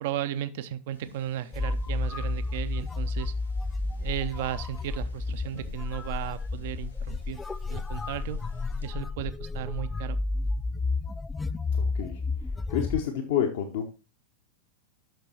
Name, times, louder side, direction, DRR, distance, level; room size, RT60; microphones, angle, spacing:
voice 1, 0.0-3.3 4.0-7.4 7.7-8.4 8.8-10.2, right 11 dB, 50° right, 14 dB, 0.7 m, -35 dB
sound 1, 0.9-8.9, left 1 dB, 85° left, 2.5 m, -54 dB
sound 2, 1.5-13.0, left 3 dB, 10° left, 0.4 m, -31 dB
voice 2, 11.7-12.2 12.7-13.9, left 8 dB, 55° left, 4 dB, 0.9 m, -29 dB
8.0 x 6.1 x 4.2 m, 0.32 s
figure-of-eight pair, 90°, 0 cm